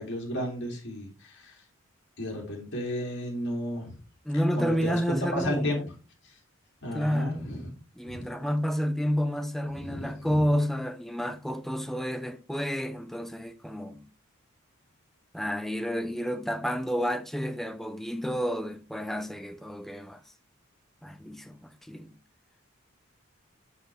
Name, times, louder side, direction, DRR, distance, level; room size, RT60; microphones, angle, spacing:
voice 1, 0.0-1.6 2.2-3.9 4.6-5.9 6.8-7.7 8.1-8.2 9.7-10.4, equal, 60° left, 2.7 m, -33 dB
voice 2, 4.2-5.8 6.9-7.6 8.0-14.1 15.3-20.2 21.0-22.2, equal, ahead, 0.5 m, -30 dB
7.7 x 5.8 x 3.3 m
head